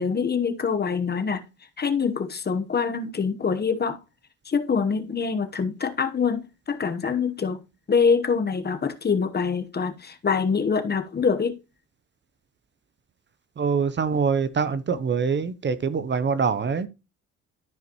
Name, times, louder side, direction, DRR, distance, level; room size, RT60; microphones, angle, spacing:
voice 1, 0.0-1.5 1.8-4.0 4.4-7.6 7.9-11.6, left 5 dB, 35° left, 1.0 m, -25 dB
voice 2, 13.6-16.9, right 6 dB, 35° right, 0.7 m, -24 dB
13.0 x 5.0 x 3.0 m
cardioid pair, 90°, 30 cm